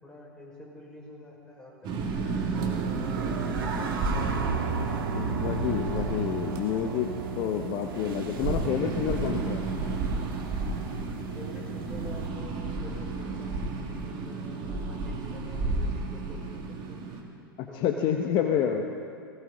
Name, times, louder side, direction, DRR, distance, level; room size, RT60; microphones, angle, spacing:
voice 1, 0.0-2.4 3.0-5.2 11.3-17.3 17.7-18.8, left 1 dB, 5° left, -4 dB, 5.4 m, -48 dB
sound 1, 1.8-17.2, right 3 dB, 40° right, 2.4 m, -32 dB
sound 2, 2.5-12.3, right 5 dB, 65° right, 1.8 m, -35 dB
voice 2, 5.1-7.1 7.4-9.6 17.6-18.8, left 9 dB, 40° left, 3 dB, 1.0 m, -28 dB
20.5 x 16.5 x 4.0 m, 2.3 s
hypercardioid pair, 100°, 12 cm